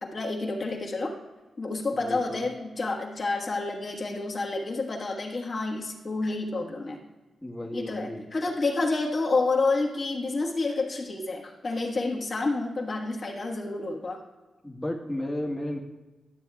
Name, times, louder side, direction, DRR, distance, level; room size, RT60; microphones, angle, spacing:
voice 1, 0.0-1.1 1.6-7.0 7.7-14.2, left 3 dB, 50° left, -1 dB, 1.4 m, -29 dB
voice 2, 1.9-2.4 7.4-8.3 14.6-15.8, left 1 dB, 10° left, -2 dB, 1.2 m, -33 dB
12.0 x 7.0 x 2.3 m, 1.2 s
cardioid pair, 65°, 0 cm